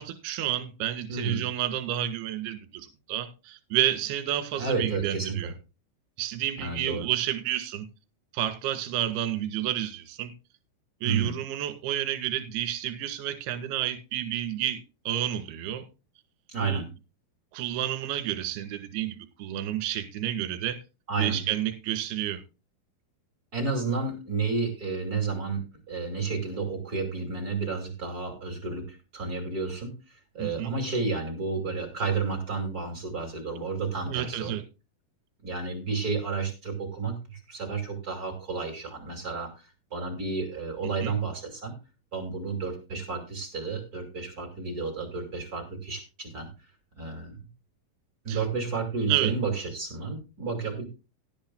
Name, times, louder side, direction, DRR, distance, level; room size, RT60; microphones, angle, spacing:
voice 1, 0.0-5.5 6.2-7.9 8.3-10.3 11.0-15.8 16.6-16.8 17.5-20.8 21.2-22.4 30.4-30.7 34.1-34.6 41.0-41.1 48.3-48.4 49.1-49.3, right 12 dB, 60° right, 9 dB, 3.2 m, -30 dB
voice 2, 1.1-1.5 4.6-5.5 6.6-7.1 11.0-11.4 16.5-16.9 21.1-21.4 23.5-25.6 25.9-34.6 35.4-41.7 42.1-46.7 47.0-47.4 48.2-50.8, right 4 dB, 30° right, 3 dB, 1.7 m, -31 dB
17.5 x 10.5 x 2.3 m, 0.30 s
omnidirectional pair, 5.9 m